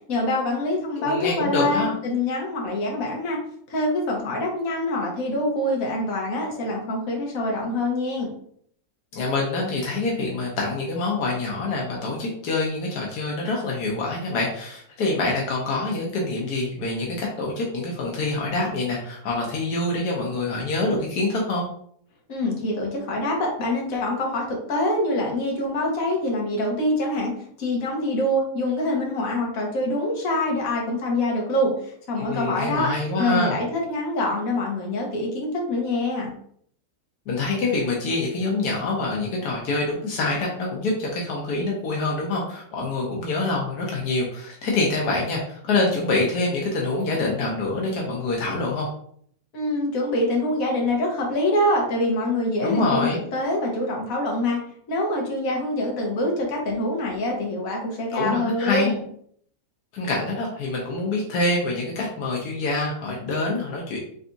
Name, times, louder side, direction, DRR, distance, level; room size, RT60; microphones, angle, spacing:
voice 1, 0.1-3.4 3.7-8.3 22.3-32.9 33.2-36.3 49.5-54.6 54.9-59.0, left 1 dB, 65° left, -1 dB, 1.4 m, -25 dB
voice 2, 1.0-2.0 9.1-21.6 32.2-33.6 37.3-48.9 52.6-53.2 58.1-58.9 59.9-64.0, left 2 dB, 80° left, -2 dB, 1.3 m, -26 dB
4.0 x 3.4 x 2.6 m, 0.63 s
omnidirectional pair, 1.6 m